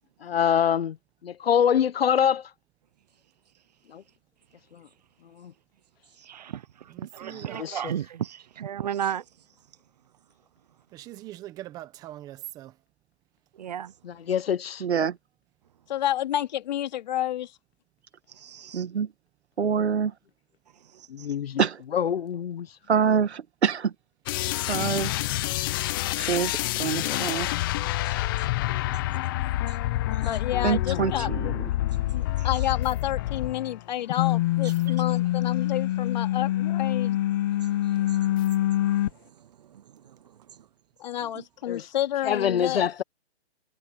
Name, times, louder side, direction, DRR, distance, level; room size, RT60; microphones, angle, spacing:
voice 1, 0.2-1.0 1.2-2.5 3.9-4.0 4.7-4.9 5.4-5.5 7.3-7.8 14.0-14.8 21.1-21.6 21.9-22.7 26.9-27.3 30.8-31.0 41.7-41.9 42.2-43.0, left 8 dB, 65° left, 1.0 m, -25 dB
voice 2, 6.2-9.2 13.6-13.9 18.3-18.8 20.9-21.3 28.0-28.1 29.7-29.8 30.1-30.2 32.4-32.5 34.6-34.9 37.5-38.5 38.8-39.0 39.7-40.2 40.5-40.6 41.3-41.4, right 10 dB, 40° right, 0.9 m, -36 dB
voice 3, 6.9-7.6 10.9-12.7, right 15 dB, 10° right, 1.1 m, -42 dB
voice 4, 14.8-15.2 18.7-19.1 19.6-20.1 21.6-21.8 22.9-23.9 24.7-25.1 26.2-27.5 30.6-31.7, right 6 dB, 85° right, 2.0 m, -25 dB
voice 5, 15.9-17.5 30.2-31.5 32.0-37.2 41.0-42.9, left 12 dB, 45° left, 2.6 m, -30 dB
sound 1, 24.3-33.8 34.1-39.1, left 15 dB, 20° left, 1.0 m, -26 dB
hypercardioid pair, 165°, 32 cm